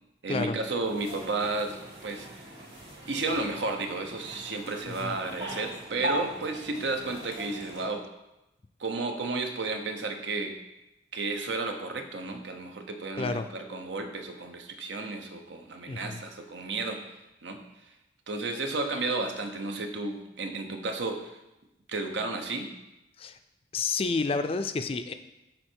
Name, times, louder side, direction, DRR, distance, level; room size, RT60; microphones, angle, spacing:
voice 1, 0.2-2.6 3.1-8.0 8.8-10.5 11.1-17.0 17.4-17.9 18.3-21.4 21.9-22.7, right 3 dB, 85° right, 5 dB, 0.8 m, -33 dB
sound 1, 0.8-7.9, equal, 65° right, 2.4 m, -39 dB
voice 2, 4.9-5.2 13.2-13.5 15.9-16.2 23.2-23.4 23.7-25.1, left 4 dB, 30° left, 9 dB, 0.4 m, -30 dB
7.7 x 4.4 x 4.5 m, 0.95 s
head